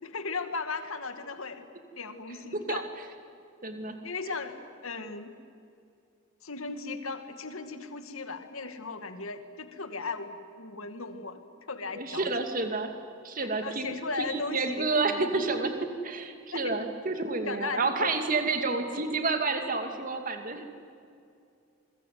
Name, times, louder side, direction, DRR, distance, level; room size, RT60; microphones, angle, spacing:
voice 1, 0.0-1.6 1.9-2.9 3.9-4.6 4.8-5.3 6.4-11.4 11.7-12.4 13.4-15.3 16.5-16.8 17.5-18.1, left 4 dB, 85° left, 8 dB, 2.2 m, -37 dB
voice 2, 3.6-3.9 12.0-13.0 13.2-20.7, right 3 dB, 40° right, 6 dB, 2.6 m, -30 dB
28.0 x 22.5 x 9.5 m, 2.5 s
head